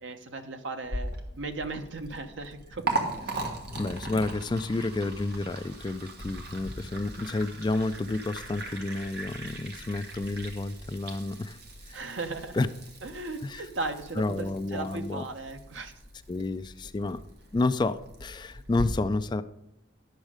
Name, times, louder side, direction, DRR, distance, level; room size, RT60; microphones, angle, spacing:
voice 1, 0.0-2.8 3.2-3.4 11.9-12.6 13.0-15.9, right 3 dB, 75° right, 7 dB, 0.9 m, -37 dB
Liquid, 0.8-18.8, right 2 dB, 55° right, 1.5 m, -39 dB
voice 2, 3.3-11.6 11.9-12.0 12.5-12.7 13.4-13.6 14.2-15.2 16.3-17.2 17.5-19.4, left 2 dB, 25° left, 12 dB, 0.3 m, -30 dB
10.5 x 6.3 x 4.9 m, 0.83 s
head